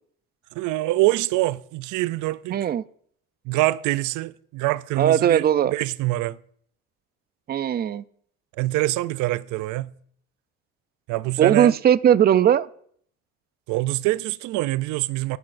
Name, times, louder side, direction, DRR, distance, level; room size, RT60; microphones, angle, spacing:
voice 1, 0.5-2.6 3.5-6.4 8.6-9.9 11.1-11.7 13.7-15.4, right 18 dB, 90° right, 0.5 m, -25 dB
voice 2, 2.5-2.8 5.0-5.7 7.5-8.0 11.4-12.7, right 9 dB, 35° right, 0.4 m, -18 dB
14.5 x 9.7 x 2.5 m
cardioid pair, 115°, 29 cm